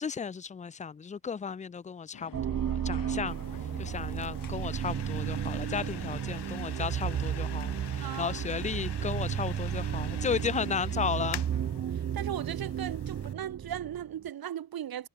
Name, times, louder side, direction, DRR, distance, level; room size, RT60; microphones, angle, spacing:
voice 1, 0.0-3.4 3.8-11.4, left 6 dB, 20° left, 0.4 m, -34 dB
sound 1, 2.1-11.8, left 8 dB, 55° left, 3.3 m, -52 dB
sound 2, 2.3-14.2, right 9 dB, 40° right, 0.6 m, -33 dB
open freezer, 3.3-13.3, left 10 dB, 75° left, 6.7 m, -47 dB
voice 2, 8.0-8.5 11.9-15.1, right 10 dB, 60° right, 1.4 m, -37 dB
cardioid pair, 110°, 40 cm